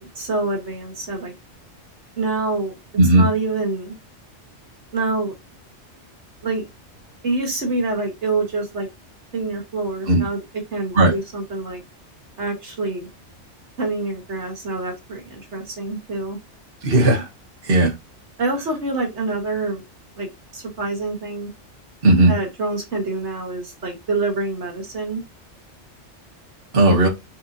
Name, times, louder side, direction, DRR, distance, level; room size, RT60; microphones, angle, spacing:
voice 1, 0.0-1.3 2.2-2.7 3.2-4.0 4.9-5.3 6.4-6.6 7.2-8.9 9.3-10.4 10.7-11.8 12.4-13.1 13.8-16.4 18.4-19.8 20.2-20.3 20.5-21.5 22.3-25.2, right 3 dB, 65° right, 1 dB, 1.9 m, -26 dB
voice 2, 3.0-3.3 10.1-10.2 10.9-11.1 16.8-17.3 17.6-17.9 22.0-22.3 26.7-27.1, right 1 dB, 50° right, -1 dB, 1.4 m, -15 dB
4.5 x 3.8 x 2.6 m, 0.21 s
omnidirectional pair, 1.3 m